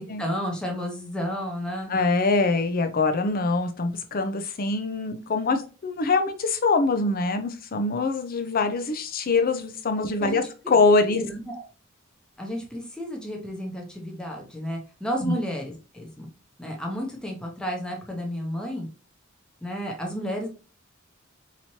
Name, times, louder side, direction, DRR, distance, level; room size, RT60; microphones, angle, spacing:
voice 1, 0.0-1.9 10.2-10.5 11.0-11.6 12.4-16.3 16.6-18.9 19.6-20.5, equal, 5° left, -1 dB, 0.8 m, -32 dB
voice 2, 1.9-11.2 15.2-15.3, left 3 dB, 45° left, 8 dB, 0.6 m, -24 dB
4.3 x 3.0 x 2.8 m, 0.34 s
head